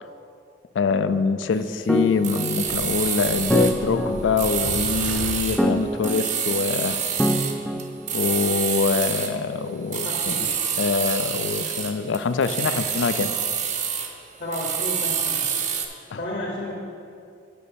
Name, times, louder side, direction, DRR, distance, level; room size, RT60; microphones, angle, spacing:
voice 1, 0.7-7.0 8.1-10.3 10.8-13.3 16.1-16.2, left 5 dB, 85° left, 12 dB, 0.4 m, -24 dB
sound 1, 1.9-8.6, equal, 5° left, 0.3 m, -26 dB
sound 2, 2.2-3.8 4.4-5.7 6.0-9.4 9.9-14.2 14.5-15.9, right 7 dB, 40° right, 0.6 m, -27 dB
sound 3, 2.7-6.0, right 1 dB, 75° right, 0.8 m, -35 dB
voice 2, 9.9-10.5 14.4-15.7 16.2-16.7, left 1 dB, 55° left, -2 dB, 0.9 m, -32 dB
6.5 x 5.3 x 6.9 m, 2.4 s
head